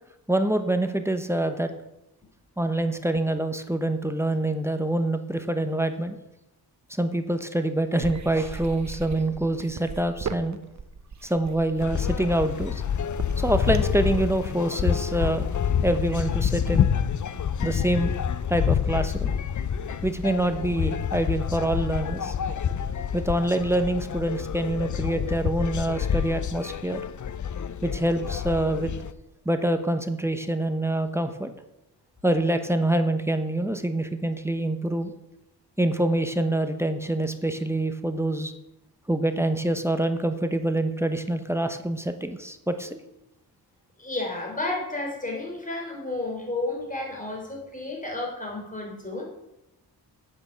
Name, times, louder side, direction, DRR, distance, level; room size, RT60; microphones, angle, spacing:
voice 1, 0.3-1.7 2.6-6.2 7.0-10.6 11.2-12.8 13.4-15.5 15.8-16.9 17.6-18.1 18.5-19.3 20.0-22.3 23.1-27.0 27.8-28.9 29.4-31.5 32.2-35.1 35.8-38.5 39.1-43.0, right 1 dB, 5° right, 8 dB, 1.0 m, -25 dB
sound 1, 8.0-14.0, right 5 dB, 45° right, 0.9 m, -37 dB
sound 2, 11.8-29.1, left 8 dB, 45° left, 0.6 m, -28 dB
voice 2, 44.0-49.3, left 2 dB, 20° left, -1 dB, 4.0 m, -32 dB
8.9 x 8.6 x 7.0 m, 0.91 s
wide cardioid pair, 105°, 40 cm